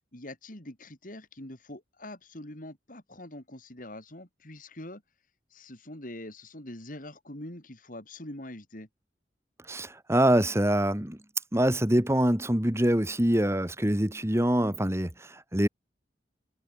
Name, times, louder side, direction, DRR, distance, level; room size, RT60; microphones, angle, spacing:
voice 1, 0.1-5.0 5.5-8.9, left 1 dB, 50° left, 4.0 m, -44 dB
voice 2, 9.7-11.2 11.5-15.7, right 1 dB, 15° right, 2.3 m, -25 dB
head